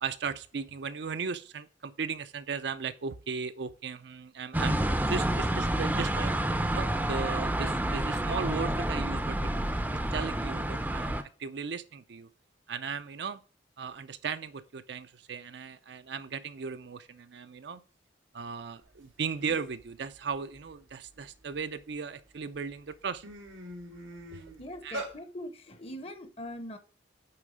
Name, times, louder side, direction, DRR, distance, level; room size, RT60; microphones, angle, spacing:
voice 1, 0.0-6.3 6.7-9.5 10.1-12.3 12.7-13.4 13.8-17.8 18.3-23.2 24.3-24.4 24.8-25.0, right 5 dB, 60° right, 0.5 m, -36 dB
sound 1, 4.5-11.2, right 1 dB, 10° right, 0.5 m, -29 dB
sound 2, 19.0-19.1 19.4-19.8 20.3-21.8 22.4-22.6 22.9-25.1, right 1 dB, 90° right, 3.0 m, -42 dB
voice 2, 24.6-26.8, left 1 dB, 30° left, 0.8 m, -41 dB
8.7 x 3.7 x 5.0 m
head